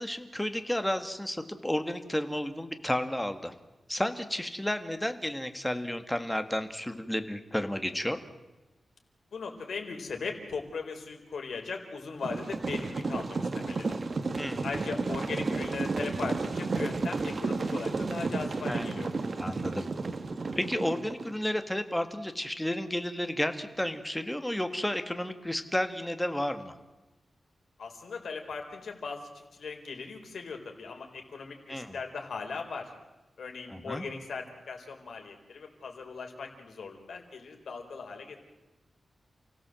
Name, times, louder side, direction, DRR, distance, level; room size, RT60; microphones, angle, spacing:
voice 1, 0.0-3.5 3.9-8.2 14.4-14.7 18.7-19.0 19.4-19.9 20.6-26.7 31.7-32.0 33.7-34.0, left 1 dB, 5° left, 8 dB, 1.8 m, -32 dB
voice 2, 9.3-13.9 14.6-19.1 27.8-32.9 33.4-38.4, left 4 dB, 85° left, 3 dB, 4.2 m, -39 dB
sound 1, 12.2-21.3, right 3 dB, 45° right, 1.7 m, -32 dB
29.0 x 16.5 x 7.7 m, 1.1 s
wide cardioid pair, 130°, 0 cm